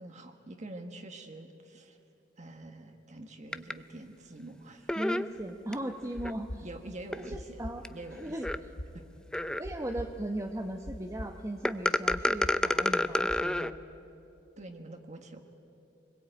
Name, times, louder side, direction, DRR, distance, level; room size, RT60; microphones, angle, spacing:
voice 1, 0.0-2.0 2.4-5.0 6.6-7.6 7.9-8.4 8.9-9.0 14.6-15.4, right 2 dB, 40° right, 5 dB, 1.5 m, -46 dB
sound 1, 3.5-3.7 4.9-5.7 6.2-6.3 7.1-7.2 7.8-7.9 8.4-8.6 9.3-9.8 11.6-13.7, left 1 dB, 5° left, 0.5 m, -28 dB
voice 2, 5.0-6.7 7.3-7.8 8.2-8.5 9.5-13.7, right 1 dB, 15° right, 3 dB, 0.9 m, -37 dB
sound 2, 5.4-13.5, left 1 dB, 85° left, 1.6 m, -43 dB
24.5 x 21.0 x 9.0 m, 2.8 s
head